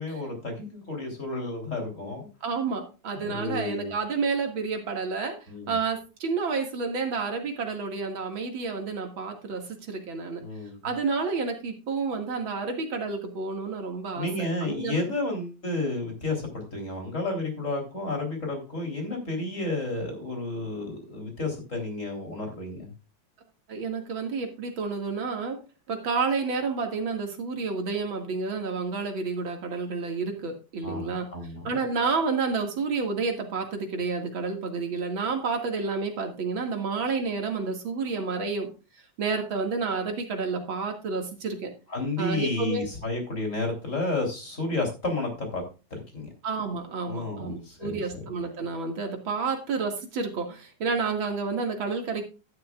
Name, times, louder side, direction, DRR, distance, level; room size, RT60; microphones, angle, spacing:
voice 1, 0.0-2.3 3.2-3.9 5.5-5.8 10.4-10.8 14.1-22.9 30.8-31.8 41.9-45.6 45.9-46.3 47.1-48.2, left 2 dB, 40° left, 2 dB, 3.9 m, -31 dB
voice 2, 2.4-5.4 5.7-10.4 10.8-14.3 14.6-15.0 23.7-25.6 25.9-31.3 31.6-38.7 39.2-41.7 42.2-42.9 46.4-52.3, right 4 dB, 85° right, 4 dB, 2.8 m, -30 dB
12.5 x 11.5 x 2.4 m, 0.31 s
omnidirectional pair, 2.1 m